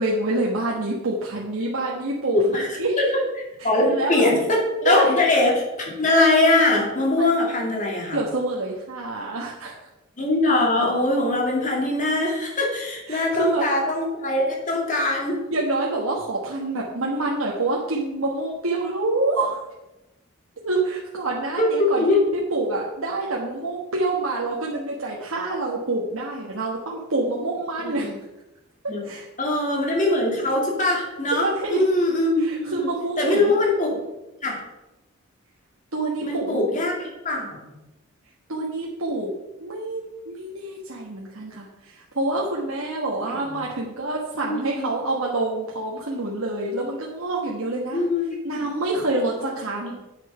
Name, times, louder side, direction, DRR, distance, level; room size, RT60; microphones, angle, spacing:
voice 1, 0.0-3.0 3.6-4.3 4.8-5.1 7.2-7.3 8.1-9.7 13.1-13.6 15.5-19.6 20.6-22.0 22.5-28.1 29.0-29.3 31.3-31.8 32.4-33.5 35.9-36.7 38.5-39.3 39.6-48.0 48.4-50.0, right 2 dB, 75° right, -3 dB, 1.4 m, -27 dB
voice 2, 2.3-2.7 3.0-3.1 3.6-8.2 10.2-15.4 21.6-21.7 22.0-22.2 27.8-28.1 28.9-29.0 29.4-32.9 33.2-34.0 34.4-34.6 36.2-37.6 43.3-43.4 44.5-44.9 47.9-48.2 48.5-48.6 49.4-49.5, left 2 dB, 35° left, -1 dB, 2.4 m, -22 dB
9.1 x 6.6 x 5.6 m, 0.99 s
head